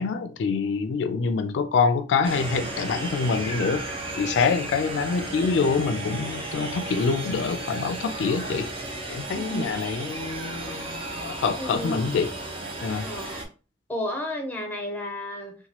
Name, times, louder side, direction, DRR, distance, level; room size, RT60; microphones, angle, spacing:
voice 1, 0.0-3.8 4.2-8.7 9.1-12.3 12.8-13.1, left 5 dB, 75° left, 0.3 m, -26 dB
sound 1, 2.2-13.5, right 2 dB, 30° right, 0.6 m, -34 dB
voice 2, 9.4-9.9 11.6-12.1 13.0-13.5 13.9-15.6, equal, 10° left, 0.6 m, -32 dB
2.9 x 2.2 x 2.8 m
head